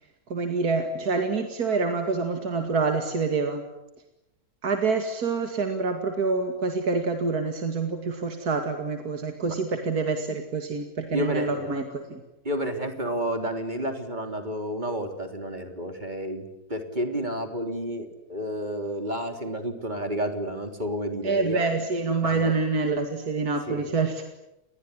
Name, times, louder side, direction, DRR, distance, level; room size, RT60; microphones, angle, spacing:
voice 1, 0.3-3.6 4.6-12.2 21.2-24.2, right 4 dB, 80° right, 5 dB, 2.7 m, -26 dB
voice 2, 11.1-11.8 12.4-21.6 22.2-22.5 23.7-24.0, equal, 30° right, 6 dB, 3.6 m, -31 dB
28.5 x 21.5 x 9.8 m, 0.91 s
omnidirectional pair, 1.6 m